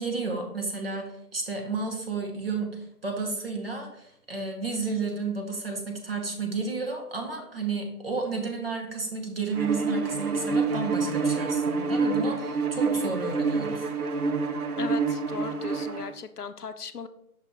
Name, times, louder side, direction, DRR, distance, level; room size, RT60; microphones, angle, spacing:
voice 1, 0.0-13.9, right 4 dB, 40° right, 2 dB, 1.1 m, -32 dB
Bowed string instrument, 9.5-16.1, right 4 dB, 70° right, 0.7 m, -27 dB
voice 2, 14.8-17.1, left 6 dB, 75° left, 10 dB, 0.7 m, -37 dB
5.8 x 4.5 x 3.7 m, 0.78 s
figure-of-eight pair, 155°, 46 cm